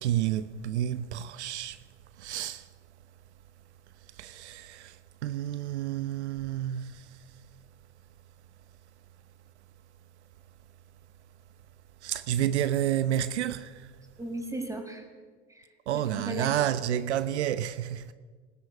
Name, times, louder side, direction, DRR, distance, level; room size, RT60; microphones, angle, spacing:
voice 1, 0.0-1.8 2.2-2.7 4.1-7.2 12.0-13.9 15.9-18.1, right 11 dB, 75° right, 0.9 m, -30 dB
voice 2, 14.2-15.1 15.5-15.7 15.9-16.7, right 1 dB, 10° right, 6.1 m, -37 dB
20.5 x 19.5 x 9.4 m
hypercardioid pair, 80°, 34 cm